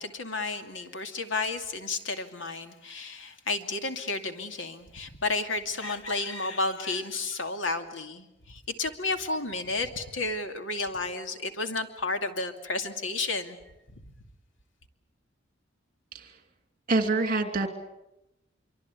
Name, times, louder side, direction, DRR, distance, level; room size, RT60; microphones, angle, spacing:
voice 1, 0.0-13.6, left 3 dB, 80° left, 7 dB, 2.6 m, -32 dB
voice 2, 16.9-17.7, right 3 dB, 45° right, 7 dB, 2.9 m, -25 dB
26.0 x 24.0 x 8.3 m, 0.91 s
head